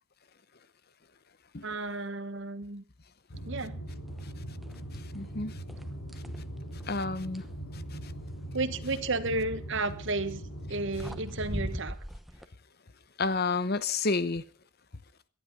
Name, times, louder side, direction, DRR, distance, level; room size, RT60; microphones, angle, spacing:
voice 1, 1.6-2.8 3.4-3.8 8.5-10.4 10.7-12.0, right 2 dB, 55° right, 1.3 m, -32 dB
sound 1, 3.3-11.8, right 1 dB, 90° left, 5.4 m, -40 dB
sound 2, 4.1-4.3 4.6-5.3 5.7-7.6 9.8-10.1 10.7-10.8 11.0-12.5, equal, ahead, 1.0 m, -41 dB
voice 2, 5.1-5.5 6.9-7.4 13.2-14.4, left 3 dB, 45° left, 0.9 m, -29 dB
18.5 x 12.5 x 5.3 m
head